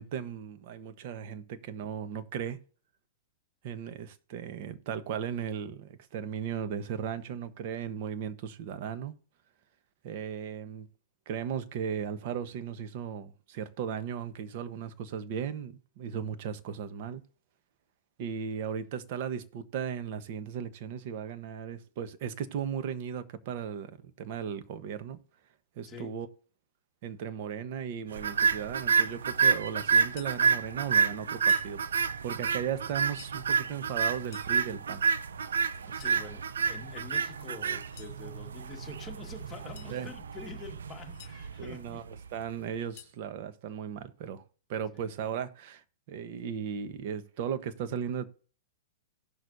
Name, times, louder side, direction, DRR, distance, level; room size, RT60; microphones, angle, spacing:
voice 1, 0.0-2.6 3.6-9.1 10.0-10.9 11.3-17.2 18.2-25.2 25.8-26.3 27.0-35.0 39.9-40.1 41.6-44.4 44.7-48.3, right 8 dB, 50° right, 1.0 m, -36 dB
sound 1, 28.2-42.5, right 5 dB, 85° right, 0.6 m, -29 dB
sound 2, 30.0-30.4 31.3-31.7 32.9-33.4 34.1-34.6 35.7-36.2 37.7-38.2 39.5-40.0 40.8-41.3 42.6-43.2, left 14 dB, 50° left, 1.2 m, -53 dB
voice 2, 35.8-42.0 44.9-45.1, left 4 dB, 15° left, 1.7 m, -46 dB
17.5 x 6.3 x 2.7 m
hypercardioid pair, 125°, 0 cm